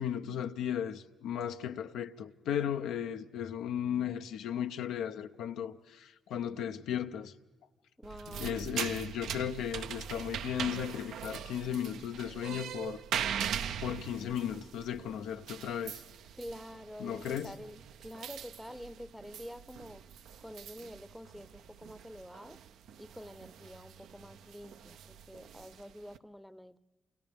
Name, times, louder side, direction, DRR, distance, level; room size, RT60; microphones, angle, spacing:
voice 1, 0.0-7.3 8.3-16.0 17.0-17.5, left 9 dB, 85° left, 0.8 m, -36 dB
voice 2, 8.0-8.7 16.3-20.1 20.4-22.6 23.0-26.8, equal, ahead, 0.7 m, -47 dB
sound 1, 8.0-26.2, right 8 dB, 75° right, 0.6 m, -42 dB
28.5 x 28.0 x 3.6 m
cardioid pair, 90°, 0 cm